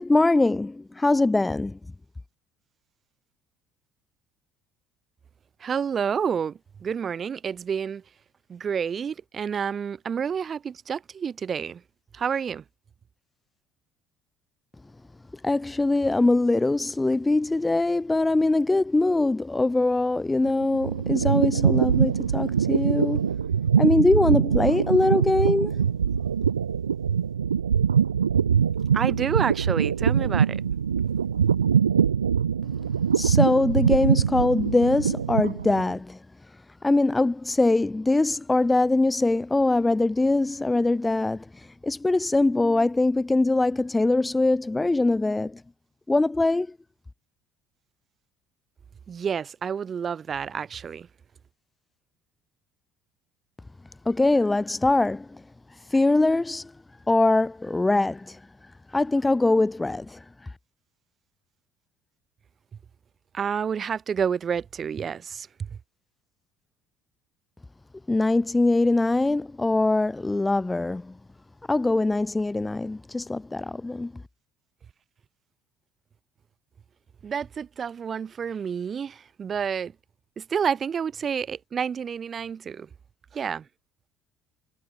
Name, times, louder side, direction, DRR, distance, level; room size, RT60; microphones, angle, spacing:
voice 1, 0.0-1.8 15.4-23.2 23.8-25.7 33.2-36.2 36.8-41.4 41.8-45.6 46.1-46.7 54.0-55.3 55.9-56.7 57.1-58.4 58.9-60.2 68.1-71.1 71.7-74.1, left 2 dB, 15° left, 1.5 m, -22 dB
voice 2, 5.6-8.0 8.5-11.8 12.1-12.6 28.9-30.6 49.1-51.1 63.3-65.7 77.2-79.9 80.4-82.9 83.3-83.6, right 7 dB, 40° right, 5.0 m, -29 dB
sound 1, 20.4-35.9, right 7 dB, 85° right, 2.4 m, -23 dB
figure-of-eight pair, 55°, 0 cm